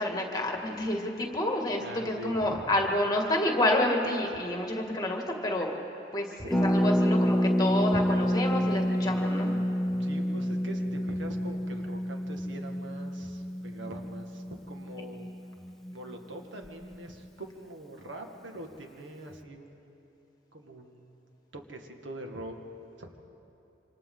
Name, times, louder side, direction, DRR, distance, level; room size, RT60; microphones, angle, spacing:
voice 1, 0.0-5.7 6.1-9.6, left 1 dB, 20° left, 1 dB, 2.1 m, -29 dB
voice 2, 1.8-2.6 10.0-15.3 15.9-19.9 20.5-21.3 21.5-22.6 23.0-23.1, right 1 dB, 90° right, 3 dB, 1.9 m, -44 dB
Harp, 6.5-16.1 16.4-16.5 16.6-17.0, equal, ahead, 0.7 m, -28 dB
27.0 x 25.5 x 3.9 m, 2.9 s
head